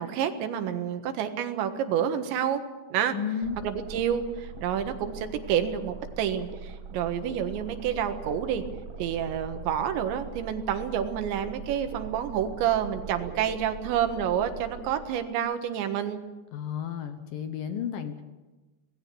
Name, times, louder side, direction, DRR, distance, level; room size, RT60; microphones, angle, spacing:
voice 1, 0.0-2.6 2.9-3.2 3.6-8.6 9.0-16.2, right 9 dB, 85° right, 8 dB, 3.8 m, -29 dB
voice 2, 3.1-3.6 16.5-18.2, left 8 dB, 65° left, 8 dB, 2.4 m, -32 dB
sound 1, 3.4-15.3, right 6 dB, 70° right, 1.7 m, -42 dB
25.5 x 19.5 x 7.0 m, 1.2 s
omnidirectional pair, 5.1 m